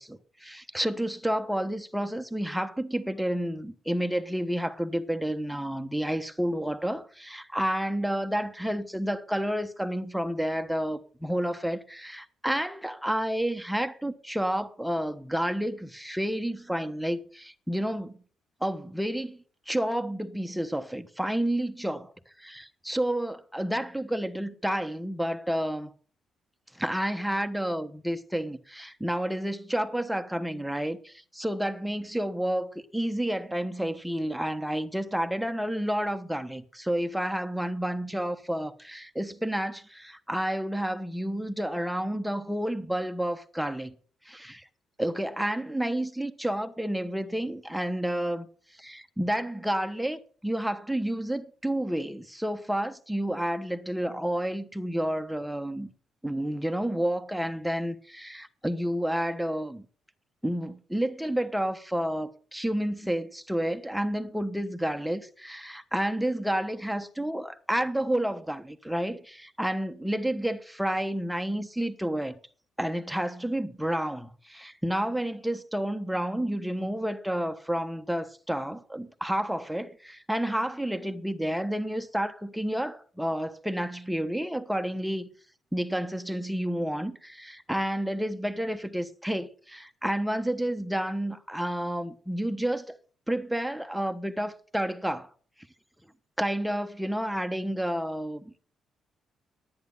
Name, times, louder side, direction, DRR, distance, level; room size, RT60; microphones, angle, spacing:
voice 1, 0.0-18.2 18.6-19.4 19.7-22.1 22.4-25.9 26.7-43.9 44.2-44.7 45.0-48.5 48.8-55.9 56.2-59.9 60.4-72.4 72.8-85.3 85.7-93.0 93.3-95.3 96.4-98.5, right 1 dB, ahead, 1.1 m, -30 dB
10.5 x 9.6 x 5.5 m
cardioid pair, 90°, 0 cm